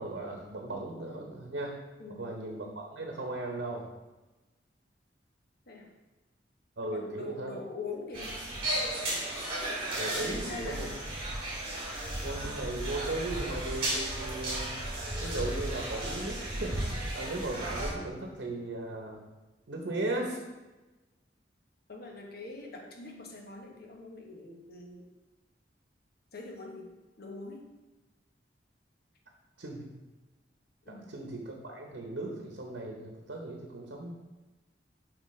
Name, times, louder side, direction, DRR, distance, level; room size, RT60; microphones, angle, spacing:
voice 1, 0.0-1.7 2.2-3.9 6.8-7.6 10.0-10.9 12.2-14.8 15.2-19.2 19.7-20.4 29.6-29.9 30.9-34.1, right 2 dB, 75° right, 0 dB, 0.9 m, -37 dB
voice 2, 6.8-8.4 10.2-11.0 21.9-25.1 26.3-26.9 27.2-27.7 30.8-31.1, left 3 dB, 60° left, 1 dB, 1.0 m, -43 dB
sound 1, 8.1-17.9, right 1 dB, 30° right, 2.2 m, -34 dB
7.4 x 4.9 x 3.2 m, 1.1 s
head